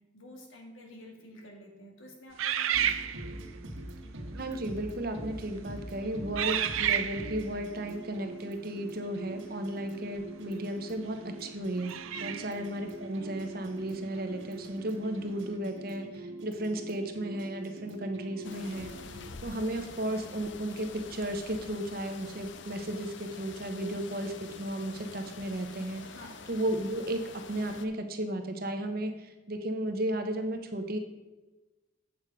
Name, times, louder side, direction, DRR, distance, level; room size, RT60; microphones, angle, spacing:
voice 1, 0.1-3.0 12.2-12.4 26.0-26.4, left 1 dB, 80° left, 1 dB, 1.9 m, -50 dB
sound 1, 2.4-3.6 4.4-4.6 5.3-5.6 6.4-7.5 10.2-10.3 11.8-12.7, right 9 dB, 90° right, 0.5 m, -31 dB
sound 2, 2.7-19.2, right 2 dB, 70° right, 1.5 m, -44 dB
voice 2, 4.4-11.9 12.2-18.9 19.4-26.0 26.5-27.2 27.5-31.0, right 1 dB, 45° right, 6 dB, 0.9 m, -34 dB
sound 3, 18.4-27.9, left 5 dB, 65° left, 0.6 m, -47 dB
8.1 x 6.7 x 4.9 m, 1.1 s
head